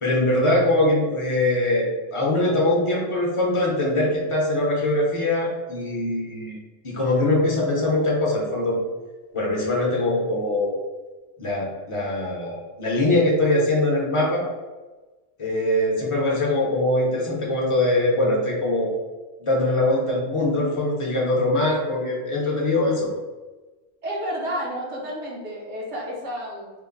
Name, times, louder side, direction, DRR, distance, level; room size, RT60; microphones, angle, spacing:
voice 1, 0.0-6.6 6.8-8.8 9.3-10.8 11.4-14.5 15.4-18.9 19.4-23.1, left 1 dB, 30° left, -3 dB, 0.7 m, -22 dB
voice 2, 24.0-26.7, equal, 75° right, -4 dB, 1.2 m, -31 dB
2.9 x 2.1 x 3.7 m, 1.2 s
omnidirectional pair, 1.2 m